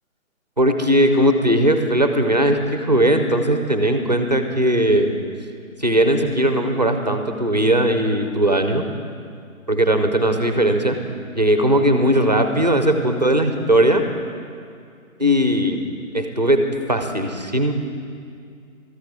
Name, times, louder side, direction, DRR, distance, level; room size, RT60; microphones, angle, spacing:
voice 1, 0.6-5.1 5.8-8.8 9.7-11.0 11.3-14.0 15.2-15.8 16.1-16.6 16.9-17.7, right 1 dB, 30° right, 6 dB, 0.5 m, -18 dB
13.5 x 11.5 x 5.1 m, 2.3 s
figure-of-eight pair, 145°, 42 cm